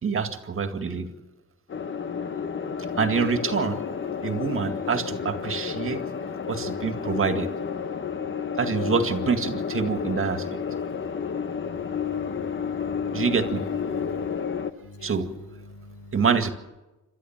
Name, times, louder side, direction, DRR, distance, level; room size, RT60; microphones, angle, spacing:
voice 1, 0.0-1.1 3.0-3.8 4.2-6.0 6.5-7.5 8.6-10.5 13.1-13.6 15.0-15.3 16.1-16.5, right 5 dB, 45° right, 7 dB, 2.1 m, -26 dB
sound 1, 1.7-14.7, left 6 dB, 40° left, 1.2 m, -31 dB
voice 2, 11.5-13.2 13.9-14.3 14.8-15.1 15.7-16.2, left 2 dB, 75° left, 7 dB, 2.2 m, -46 dB
27.5 x 13.0 x 7.4 m, 1.1 s
cardioid pair, 90°, 30 cm